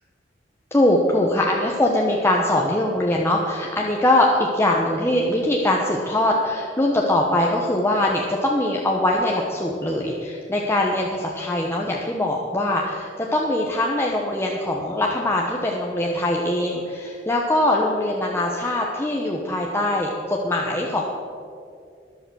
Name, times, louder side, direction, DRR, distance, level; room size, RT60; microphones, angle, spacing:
voice 1, 0.7-21.0, left 1 dB, 15° left, -2 dB, 1.1 m, -22 dB
13.5 x 11.0 x 6.3 m, 2.4 s
head